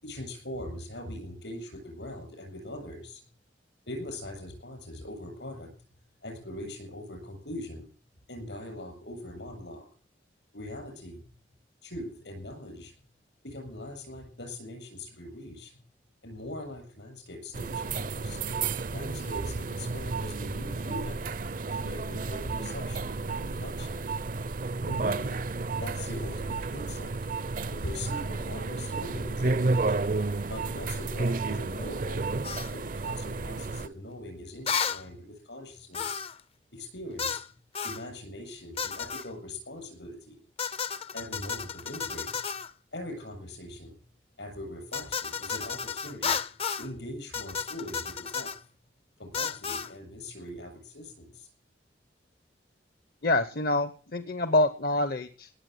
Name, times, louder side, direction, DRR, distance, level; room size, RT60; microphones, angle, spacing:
voice 1, 0.0-3.3 3.9-5.7 6.2-7.9 8.3-9.9 10.5-11.3 11.8-12.9 13.4-15.7 16.2-18.5 18.9-21.3 21.7-24.1 24.9-25.5 25.8-27.2 27.7-29.9 30.5-32.3 32.7-36.2 36.7-37.4 37.8-40.4 41.1-42.6 42.9-44.0 44.4-46.4 46.7-48.6 49.2-51.5, left 1 dB, 75° left, 4 dB, 7.6 m, -41 dB
sound 1, 17.5-33.9, right 3 dB, 50° right, 0.6 m, -32 dB
sound 2, 32.4-32.7 34.7-35.0 35.9-36.4 37.2-37.5 37.8-38.0 38.8-39.3 40.6-42.7 44.9-46.9 47.3-48.6 49.3-49.9, left 6 dB, 35° left, 0.6 m, -33 dB
voice 2, 53.2-55.5, left 2 dB, 55° left, 12 dB, 0.9 m, -26 dB
18.5 x 7.4 x 8.0 m, 0.41 s
head